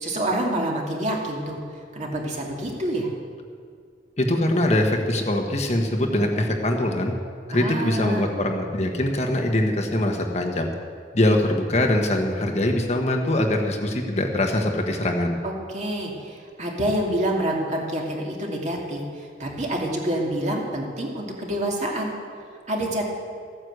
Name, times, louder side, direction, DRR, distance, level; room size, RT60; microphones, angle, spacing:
voice 1, 0.0-1.6 1.9-3.1 7.5-8.3 15.4-22.1 22.7-23.0, right 1 dB, 40° right, -1 dB, 2.4 m, -27 dB
voice 2, 4.2-7.1 7.5-10.7 11.1-15.4, left 1 dB, 35° left, 2 dB, 1.3 m, -23 dB
14.0 x 9.6 x 8.0 m, 2.1 s
head